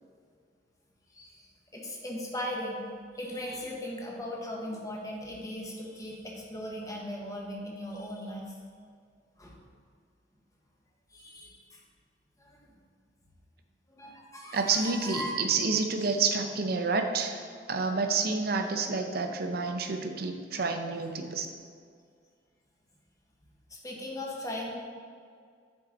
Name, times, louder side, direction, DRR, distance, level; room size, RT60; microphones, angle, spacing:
voice 1, 1.1-1.5 1.7-2.8 3.1-8.5 9.4-9.6 11.1-11.8 12.4-12.7 13.9-15.3 23.7-24.7, left 1 dB, 20° left, -2 dB, 1.1 m, -38 dB
voice 2, 14.5-17.4 17.7-21.5, right 4 dB, 55° right, 5 dB, 0.6 m, -29 dB
7.7 x 4.8 x 3.8 m, 2.1 s
head